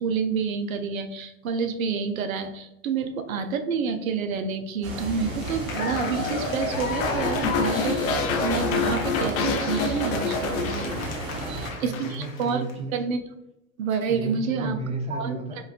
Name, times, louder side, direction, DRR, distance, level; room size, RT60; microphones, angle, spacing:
voice 1, 0.0-10.9 11.8-12.7 12.9-13.2 13.8-14.8 15.1-15.4, right 5 dB, 85° right, 8 dB, 0.5 m, -28 dB
sound 1, 4.8-11.7, right 2 dB, 55° right, 1.2 m, -33 dB
Cheering / Applause, 5.2-12.7, left 5 dB, 80° left, 0.7 m, -35 dB
sound 2, 7.0-11.5 11.7-12.1, left 4 dB, 35° left, 0.5 m, -27 dB
voice 2, 11.1-13.0 14.1-15.6, right 3 dB, 15° right, 2 dB, 0.5 m, -34 dB
4.0 x 2.2 x 2.4 m, 0.86 s
hypercardioid pair, 95°, 40 cm